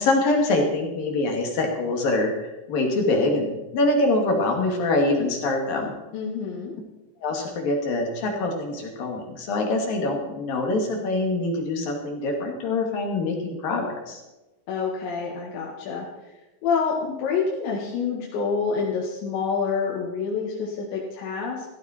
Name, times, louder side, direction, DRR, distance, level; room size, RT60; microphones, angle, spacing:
voice 1, 0.0-2.3 2.7-5.9 7.2-14.2, left 2 dB, 55° left, 1 dB, 3.5 m, -24 dB
voice 2, 6.1-6.7 14.7-16.1 16.6-21.7, left 5 dB, 70° left, -4 dB, 4.1 m, -27 dB
16.0 x 15.0 x 4.4 m, 1.0 s
omnidirectional pair, 5.5 m